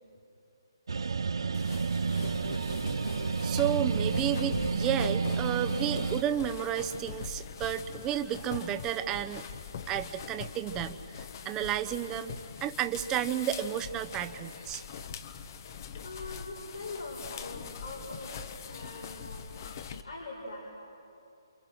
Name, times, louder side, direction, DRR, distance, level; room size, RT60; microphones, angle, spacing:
sound 1, 0.9-6.2, right 5 dB, 70° right, 0.9 m, -30 dB
sound 2, 1.5-20.0, left 6 dB, 45° left, 1.1 m, -43 dB
voice 1, 3.4-9.4 9.9-12.3 12.6-14.8, right 10 dB, 20° right, 9 dB, 0.9 m, -32 dB
voice 2, 16.0-19.5 20.0-20.7, left 2 dB, 85° left, -6 dB, 5.4 m, -42 dB
28.5 x 27.5 x 6.3 m, 2.8 s
figure-of-eight pair, 145°, 3 cm